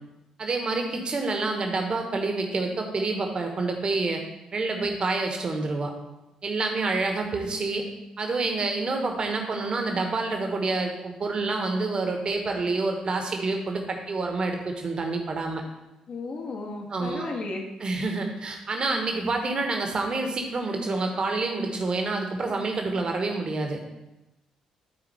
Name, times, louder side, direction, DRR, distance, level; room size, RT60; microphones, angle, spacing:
voice 1, 0.4-4.2 4.5-5.9 6.4-7.8 8.2-15.6 16.9-17.2 17.8-23.8, right 3 dB, 35° right, 3 dB, 1.4 m, -28 dB
voice 2, 16.1-17.6, left 3 dB, 45° left, -1 dB, 1.6 m, -34 dB
13.0 x 4.6 x 3.4 m, 0.96 s
figure-of-eight pair, 40°, 3 cm